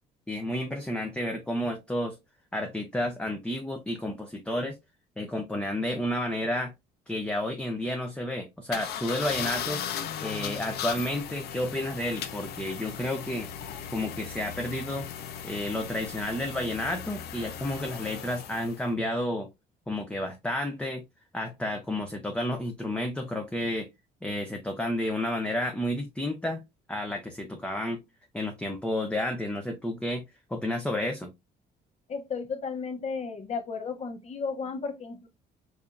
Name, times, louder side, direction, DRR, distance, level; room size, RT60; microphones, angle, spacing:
voice 1, 0.3-2.2 2.5-4.8 5.2-6.7 7.1-9.8 10.2-13.5 13.9-15.1 15.4-19.5 19.9-21.0 21.3-23.9 24.2-26.6 26.9-28.0 28.3-30.2 30.5-31.3, left 1 dB, 5° left, 0.6 m, -31 dB
sound 1, 8.7-18.9, left 8 dB, 70° left, 0.6 m, -37 dB
voice 2, 32.1-35.3, left 5 dB, 40° left, 1.0 m, -34 dB
4.8 x 2.8 x 2.4 m
cardioid pair, 110°, 17 cm